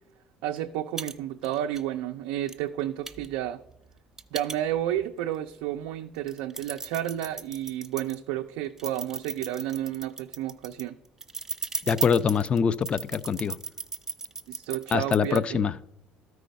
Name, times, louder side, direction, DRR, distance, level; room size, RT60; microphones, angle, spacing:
voice 1, 0.4-3.6 4.3-11.0 14.5-15.6, right 12 dB, 85° right, 0.4 m, -31 dB
sound 1, 0.6-0.7 1.0-1.1 1.4-1.8 2.5-2.6 3.1-5.0 5.5-5.6 6.1-8.2 8.8-15.4, right 3 dB, 15° right, 0.6 m, -36 dB
voice 2, 11.9-13.6 14.9-15.7, left 6 dB, 35° left, 0.4 m, -24 dB
12.5 x 4.8 x 5.1 m
supercardioid pair, 100°, 3 cm